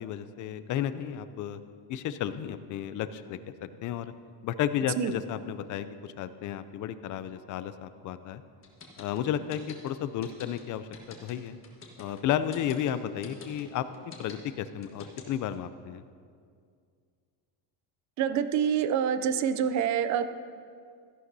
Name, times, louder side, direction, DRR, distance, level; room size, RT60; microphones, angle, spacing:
voice 1, 0.0-1.6 1.9-3.5 3.8-4.1 4.4-8.4 9.0-11.6 12.0-13.8 14.2-16.0, left 10 dB, 40° left, 12 dB, 0.4 m, -33 dB
sound 1, 8.6-15.5, left 5 dB, 25° left, 1.5 m, -47 dB
voice 2, 18.2-20.3, right 8 dB, 40° right, 12 dB, 0.5 m, -26 dB
14.5 x 11.0 x 2.7 m, 2.2 s
cardioid pair, 145°, 47 cm